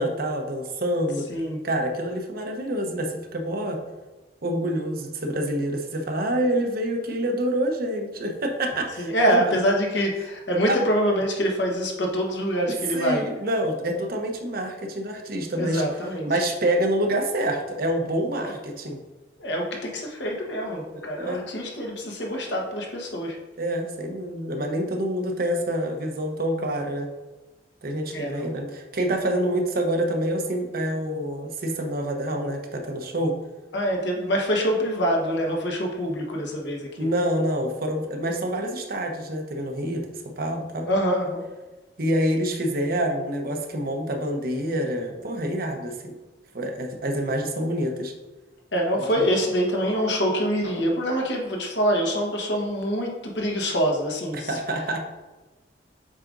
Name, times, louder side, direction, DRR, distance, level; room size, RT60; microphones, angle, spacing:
voice 1, 0.0-1.3 1.6-3.8 4.4-9.6 10.7-10.8 12.9-15.8 16.3-19.0 21.0-21.4 23.6-27.1 27.8-33.3 37.0-40.9 42.0-46.1 46.5-48.1 49.2-49.3 54.3-55.0, right 1 dB, 55° right, 3 dB, 0.9 m, -27 dB
voice 2, 9.0-13.3 15.6-16.3 18.4-18.5 19.4-23.4 28.1-28.5 33.7-37.1 40.9-41.4 48.7-54.6, equal, 75° left, 0 dB, 1.3 m, -25 dB
7.4 x 4.9 x 2.6 m, 1.2 s
head